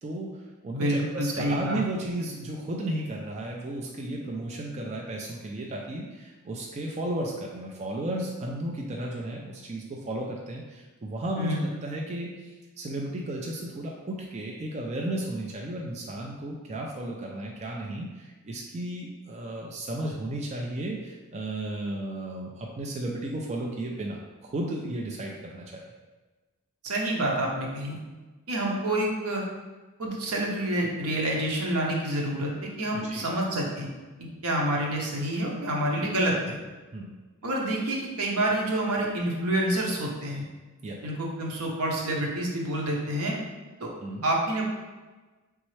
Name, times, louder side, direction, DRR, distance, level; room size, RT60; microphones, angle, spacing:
voice 1, 0.0-25.8 33.0-33.3 36.9-37.1 40.8-41.0 44.0-44.2, right 1 dB, 30° right, -1 dB, 0.4 m, -34 dB
voice 2, 0.7-1.8 11.4-11.6 26.8-28.0 28.5-29.4 30.0-33.9 34.2-36.6 37.4-40.4 41.0-43.4 43.8-43.9 44.2-44.6, right 1 dB, 75° right, -2 dB, 0.9 m, -28 dB
4.1 x 3.5 x 3.2 m, 1.3 s
head